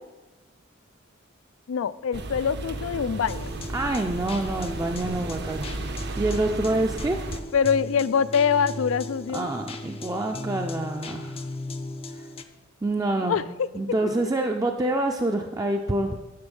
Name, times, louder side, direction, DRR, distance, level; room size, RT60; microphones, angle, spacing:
voice 1, 1.7-3.5 7.5-9.5 13.2-13.7 14.0-14.3, left 7 dB, 85° left, 17 dB, 0.4 m, -24 dB
sound 1, 2.1-7.4, right 2 dB, 55° right, 0.7 m, -33 dB
sound 2, 3.3-12.4, left 2 dB, 30° left, 0.5 m, -38 dB
voice 2, 3.7-5.7 6.2-7.2 9.3-11.4 12.8-13.4 13.7-16.2, right 2 dB, 20° right, 3 dB, 0.4 m, -26 dB
10.5 x 6.4 x 5.4 m, 1.1 s
head